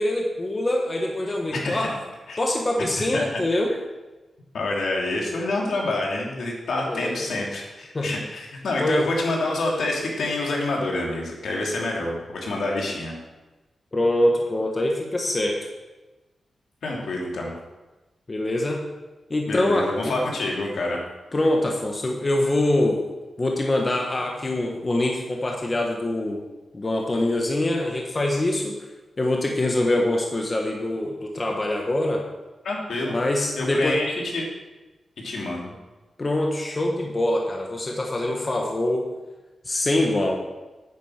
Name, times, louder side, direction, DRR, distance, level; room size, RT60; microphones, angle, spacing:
voice 1, 0.0-2.0 2.4-3.7 6.8-7.3 7.9-8.1 8.8-9.1 13.9-15.7 18.3-18.8 19.3-20.1 21.3-23.0 23.4-26.4 26.7-28.8 29.2-32.2 33.1-34.0 36.2-39.1 39.6-40.4, left 1 dB, 25° left, 1 dB, 1.3 m, -24 dB
voice 2, 1.5-1.9 2.3-2.4 3.1-3.4 4.5-13.1 16.8-17.5 19.5-21.0 32.6-33.2 33.5-34.5 35.2-35.7, left 2 dB, 75° left, -2 dB, 3.1 m, -27 dB
10.0 x 9.3 x 6.5 m, 1.1 s
wide cardioid pair, 170°, 0 cm